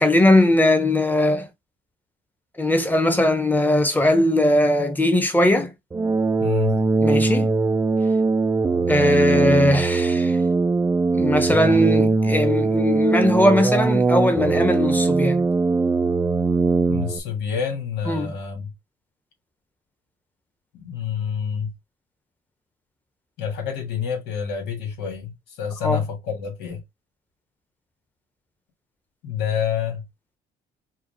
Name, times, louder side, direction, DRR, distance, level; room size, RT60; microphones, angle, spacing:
voice 1, 0.0-1.5 2.6-5.7 7.0-7.5 8.9-10.4 11.1-15.5 18.1-18.3 25.8-26.0, left 1 dB, 10° left, 1.0 m, -19 dB
sound 1, 5.9-17.2, right 3 dB, 15° right, 0.4 m, -21 dB
voice 2, 6.4-6.8 16.9-18.7 20.7-21.7 23.4-26.8 29.2-30.0, left 7 dB, 85° left, 1.8 m, -28 dB
4.7 x 2.4 x 3.2 m
cardioid pair, 110°, 17 cm